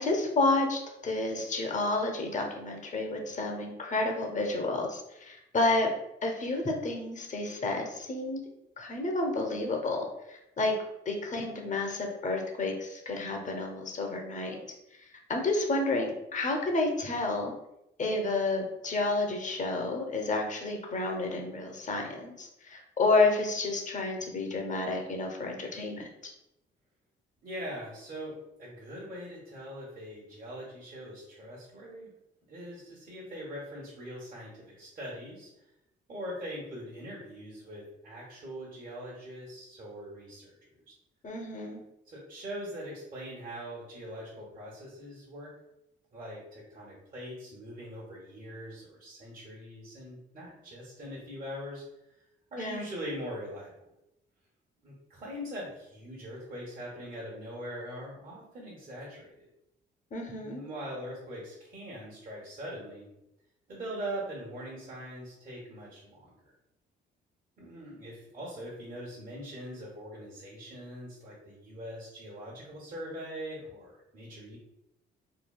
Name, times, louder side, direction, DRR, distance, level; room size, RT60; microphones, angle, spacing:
voice 1, 0.0-5.9 6.2-8.4 8.8-10.7 11.1-14.6 15.3-17.5 18.0-26.3 41.2-41.8 52.6-52.9 60.1-60.6, left 2 dB, 40° left, 2 dB, 0.7 m, -30 dB
voice 2, 27.4-32.1 32.5-35.5 36.1-40.8 42.1-45.5 46.1-51.8 52.5-53.9 54.8-59.5 60.4-63.1 63.7-66.3 67.6-74.6, equal, 45° right, -5 dB, 1.0 m, -42 dB
3.7 x 2.2 x 2.2 m, 0.86 s
cardioid pair, 90°, 20 cm